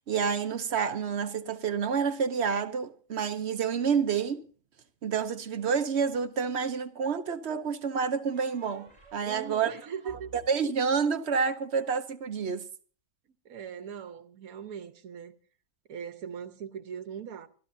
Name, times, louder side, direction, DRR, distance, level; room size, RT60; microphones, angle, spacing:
voice 1, 0.1-4.4 5.0-9.7 10.5-12.7, right 6 dB, 55° right, 1.0 m, -29 dB
sound 1, 6.1-7.0 8.3-11.9, right 5 dB, 20° right, 7.3 m, -56 dB
voice 2, 9.2-10.3 13.4-15.3 15.9-17.5, right 7 dB, 75° right, 1.5 m, -40 dB
25.0 x 13.0 x 2.7 m
omnidirectional pair, 1.5 m